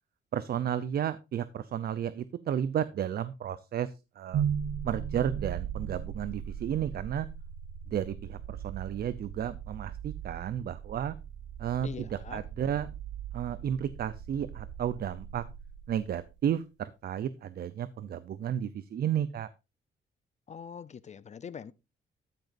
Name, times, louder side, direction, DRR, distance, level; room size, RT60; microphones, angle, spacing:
voice 1, 0.3-4.4 4.8-7.3 7.9-11.2 11.6-12.9 13.3-15.4 15.9-19.5, right 9 dB, 60° right, 0.6 m, -33 dB
sound 1, 4.3-16.4, right 8 dB, 80° right, 1.0 m, -38 dB
voice 2, 11.8-12.4 20.5-21.7, left 7 dB, 40° left, 0.5 m, -43 dB
13.0 x 9.2 x 2.6 m
cardioid pair, 105°, 18 cm